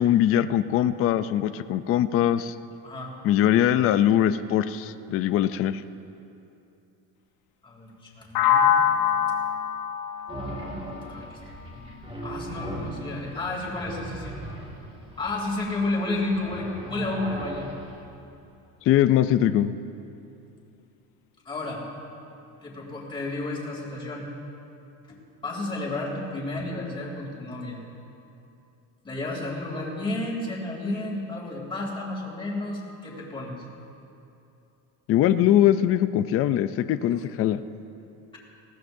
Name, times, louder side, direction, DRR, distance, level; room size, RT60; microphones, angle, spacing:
voice 1, 0.0-2.5 3.2-5.8 18.9-19.7 35.1-37.6, left 11 dB, 40° left, 12 dB, 0.4 m, -21 dB
voice 2, 7.6-8.8 11.1-11.4 11.6-11.9 12.2-14.4 15.2-17.7 21.4-21.8 22.6-24.3 25.4-27.8 29.0-33.6, left 2 dB, 15° left, -3 dB, 3.1 m, -32 dB
sound 1, 8.3-12.2, left 8 dB, 70° left, 1.0 m, -25 dB
sound 2, 10.3-18.0, right 1 dB, 15° right, 2.1 m, -38 dB
20.5 x 17.0 x 2.7 m, 2.8 s
cardioid pair, 145°, 37 cm